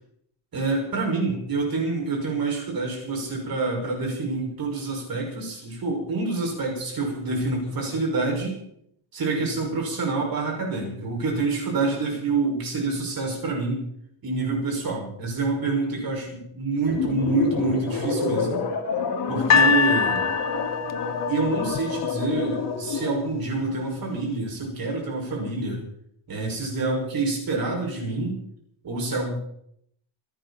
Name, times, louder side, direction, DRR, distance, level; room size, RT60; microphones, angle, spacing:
voice 1, 0.5-8.6 9.1-13.9 14.2-18.6 19.3-20.2 21.3-25.8 26.3-28.4 28.8-29.4, right 3 dB, 45° right, 0 dB, 6.3 m, -27 dB
sound 1, 16.9-23.3, left 5 dB, 55° left, 3.1 m, -28 dB
sound 2, 19.5-22.7 23.4-23.5, left 6 dB, 35° left, 0.6 m, -24 dB
26.5 x 12.0 x 4.4 m, 0.72 s
cardioid pair, 175°, 48 cm